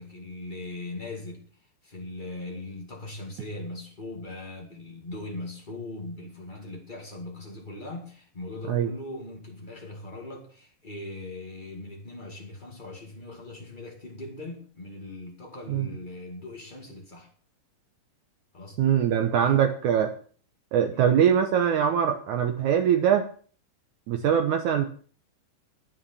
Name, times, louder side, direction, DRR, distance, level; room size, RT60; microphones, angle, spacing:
voice 1, 0.0-1.4 1.8-17.3 18.5-18.8 19.4-19.6 20.9-21.1, left 2 dB, 60° left, 0.5 m, -40 dB
voice 2, 18.8-20.1 20.7-23.3 24.1-24.9, right 8 dB, 80° right, 1.7 m, -22 dB
9.9 x 9.1 x 6.9 m
omnidirectional pair, 4.7 m